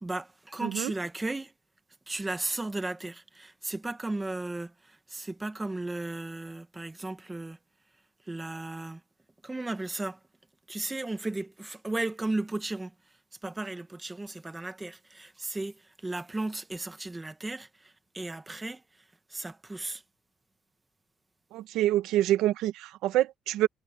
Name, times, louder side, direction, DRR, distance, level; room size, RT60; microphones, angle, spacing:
voice 1, 0.0-1.5 2.1-7.6 8.2-9.0 9.4-10.2 10.7-12.9 13.4-20.0, right 2 dB, 10° right, 1.2 m, -35 dB
voice 2, 21.5-23.7, right 14 dB, 90° right, 1.1 m, -26 dB
cardioid pair, 175°, 0 cm